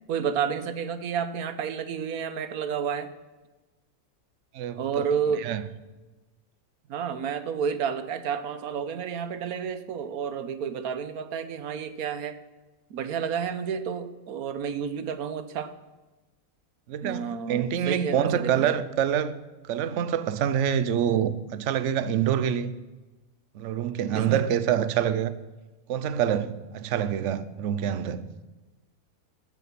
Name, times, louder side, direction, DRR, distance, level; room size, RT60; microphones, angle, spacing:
voice 1, 0.1-3.1 4.8-5.5 6.9-12.4 12.9-15.7 17.0-18.7 24.1-24.4, right 7 dB, 85° right, 1.3 m, -30 dB
voice 2, 4.5-5.1 5.4-5.6 16.9-19.4 19.7-22.7 23.5-25.3 25.9-28.2, right 9 dB, 60° right, 1.0 m, -26 dB
14.0 x 7.1 x 5.9 m
omnidirectional pair, 1.5 m